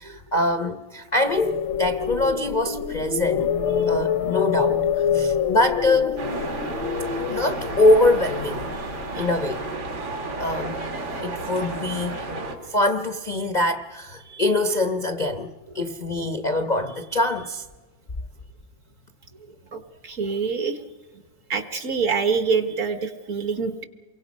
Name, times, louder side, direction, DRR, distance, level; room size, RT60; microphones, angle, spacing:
voice 1, 0.0-3.5 3.8-6.2 7.3-8.7 9.1-9.6 10.4-10.8 11.2-12.3 12.7-15.5 15.7-17.6, left 2 dB, 40° left, 0.6 m, -23 dB
sound 1, 1.2-9.3, left 7 dB, 75° left, 1.6 m, -26 dB
sound 2, 6.2-12.6, right 2 dB, 80° right, 3.3 m, -32 dB
voice 2, 19.7-20.8 21.5-23.8, right 5 dB, 45° right, 1.4 m, -25 dB
28.0 x 23.5 x 5.3 m
omnidirectional pair, 2.1 m